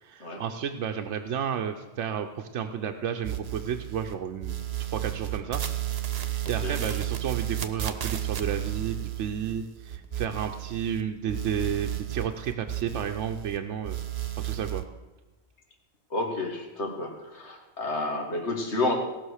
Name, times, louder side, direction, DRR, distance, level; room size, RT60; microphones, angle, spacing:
voice 1, 0.0-5.6 6.0-14.0 14.4-14.8, right 8 dB, 90° right, 5 dB, 1.0 m, -32 dB
sound 1, 3.2-4.1 4.4-11.0 11.3-13.6 13.8-14.8, right 13 dB, 60° right, 1.1 m, -33 dB
voice 2, 16.1-18.9, left 2 dB, 70° left, 3 dB, 2.1 m, -30 dB
17.5 x 6.1 x 6.4 m, 1.2 s
omnidirectional pair, 1.2 m